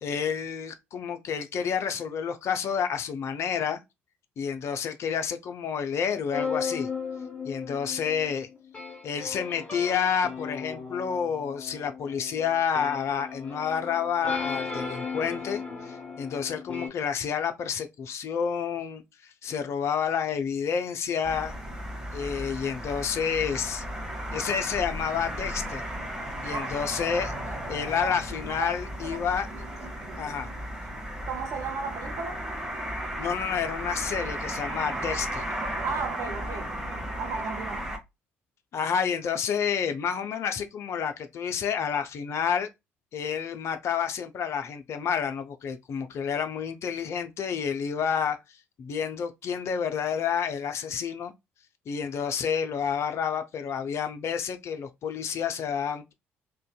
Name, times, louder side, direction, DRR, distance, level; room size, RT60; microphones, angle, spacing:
voice 1, 0.0-3.8 4.4-6.9 7.5-8.5 9.0-21.5 22.1-23.8 24.3-25.8 26.4-27.3 27.7-29.5 30.2-30.5 33.2-35.5 38.7-42.7 43.1-48.4 48.8-51.3 51.9-56.1, left 7 dB, 45° left, 0.4 m, -29 dB
sound 1, 6.3-16.9, left 5 dB, 20° left, 1.2 m, -36 dB
sound 2, 21.2-38.0, equal, 10° right, 0.8 m, -35 dB
voice 2, 31.3-32.5 35.8-36.8 37.2-37.9, right 5 dB, 55° right, 0.6 m, -34 dB
2.5 x 2.2 x 2.3 m
figure-of-eight pair, 50°, 6 cm